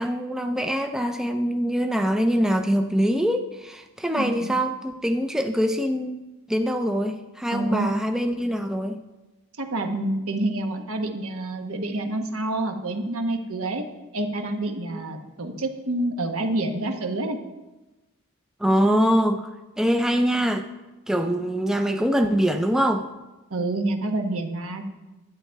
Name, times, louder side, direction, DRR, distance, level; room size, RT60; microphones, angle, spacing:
voice 1, 0.0-6.2 6.5-9.0 14.9-15.0 18.6-19.5 19.8-20.7 21.1-23.1, equal, ahead, 6 dB, 0.4 m, -23 dB
voice 2, 4.1-4.5 7.5-7.9 9.6-13.8 14.1-17.4 23.5-24.9, right 2 dB, 75° right, 5 dB, 1.2 m, -28 dB
11.0 x 9.0 x 4.6 m, 1.1 s
head